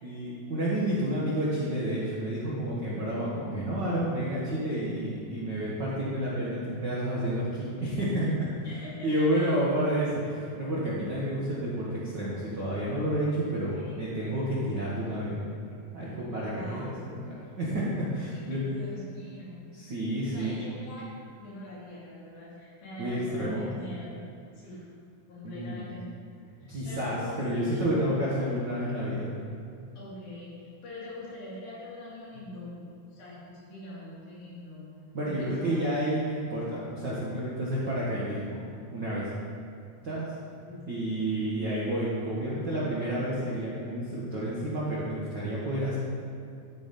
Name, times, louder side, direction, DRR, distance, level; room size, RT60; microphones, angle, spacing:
voice 1, 0.0-8.5 9.0-15.5 15.9-18.6 19.7-20.6 23.0-23.7 25.4-25.8 26.6-29.4 35.1-38.6 38.9-39.3 40.0-40.3 40.7-46.0, right 1 dB, 60° right, -7 dB, 1.1 m, -30 dB
voice 2, 8.6-9.5 13.5-14.2 16.5-16.9 18.3-19.6 20.2-21.1 21.4-24.2 24.5-24.8 25.3-26.0 26.6-27.9 30.0-35.8 40.6-40.9, left 1 dB, 80° left, -8 dB, 4.5 m, -44 dB
13.5 x 4.7 x 5.2 m, 2.5 s
omnidirectional pair, 4.1 m